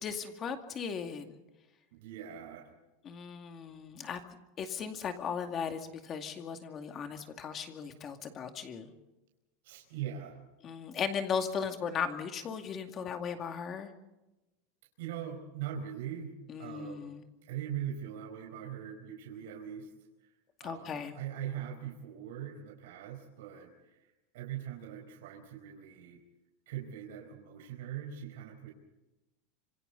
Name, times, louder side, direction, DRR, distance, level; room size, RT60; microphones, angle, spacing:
voice 1, 0.0-1.4 3.0-4.2 4.6-8.9 10.6-13.9 16.5-17.2 20.6-21.2, left 6 dB, 25° left, 6 dB, 2.3 m, -37 dB
voice 2, 1.9-2.7 9.6-10.4 15.0-17.2 17.5-19.9 20.2-20.3 20.6-26.2 26.7-28.7, right 9 dB, 70° right, 1 dB, 4.7 m, -41 dB
27.0 x 26.5 x 4.1 m, 1.0 s
supercardioid pair, 170°, 0 cm